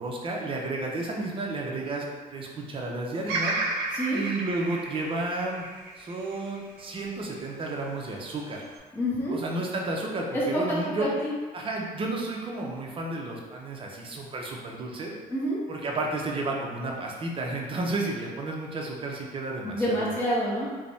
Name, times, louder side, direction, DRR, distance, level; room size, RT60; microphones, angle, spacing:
voice 1, 0.0-3.6 4.1-5.7 6.0-8.6 9.3-11.1 11.5-15.1 15.7-20.1, right 2 dB, 30° right, -1 dB, 0.5 m, -32 dB
Bird vocalization bird call bird song, 3.3-7.5 8.0-8.8, right 3 dB, 90° right, 0.5 m, -33 dB
voice 2, 8.9-9.4 10.3-11.3 15.3-15.6 19.6-20.7, equal, 15° left, -6 dB, 0.6 m, -27 dB
3.3 x 2.0 x 2.6 m, 1.4 s
cardioid pair, 110°, 17 cm